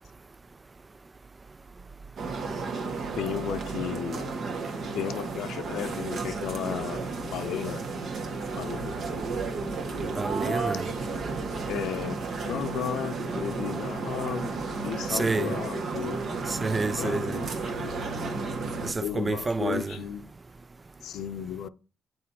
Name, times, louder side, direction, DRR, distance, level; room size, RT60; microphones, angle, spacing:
sound 1, 2.2-18.9, right 4 dB, 60° right, 1.5 m, -33 dB
voice 1, 3.2-4.4 4.9-7.9 8.6-9.0 11.1-11.2 11.7-14.5 14.8-16.2 17.0-17.5 19.0-20.2 21.0-21.7, left 10 dB, 80° left, 0.6 m, -34 dB
voice 2, 10.2-10.9 15.1-15.6 16.5-17.4 18.8-20.0, right 3 dB, 25° right, 0.3 m, -29 dB
6.3 x 4.2 x 4.3 m
cardioid pair, 90°, 0 cm